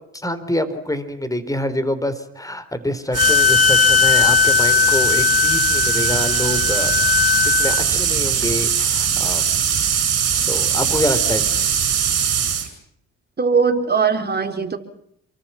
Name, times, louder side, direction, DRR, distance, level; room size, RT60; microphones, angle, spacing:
voice 1, 0.1-6.9 7.6-9.4 10.3-11.6, left 1 dB, 10° left, 12 dB, 4.2 m, -26 dB
Wind instrument woodwind instrument, 3.1-7.8, left 10 dB, 25° left, 2.2 m, -18 dB
sound 1, 3.1-12.7, right 8 dB, 55° right, 7.2 m, -21 dB
voice 2, 13.4-14.8, right 5 dB, 35° right, 5 dB, 4.1 m, -19 dB
28.5 x 24.0 x 5.9 m, 0.71 s
cardioid pair, 90°, 30 cm